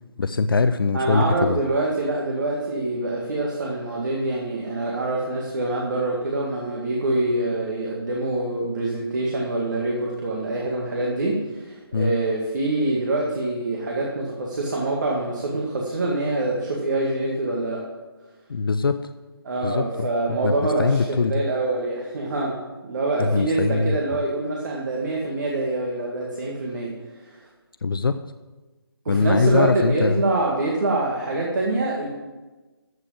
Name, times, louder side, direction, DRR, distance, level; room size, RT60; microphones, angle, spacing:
voice 1, 0.2-1.6 11.9-12.1 18.5-19.0 19.6-21.4 23.2-24.0 27.8-28.2 29.1-30.2, left 4 dB, 60° left, 11 dB, 0.5 m, -22 dB
voice 2, 0.9-17.8 19.4-27.4 29.1-32.1, right 2 dB, 50° right, -2 dB, 1.9 m, -25 dB
14.0 x 5.0 x 7.4 m, 1.2 s
figure-of-eight pair, 150°, 13 cm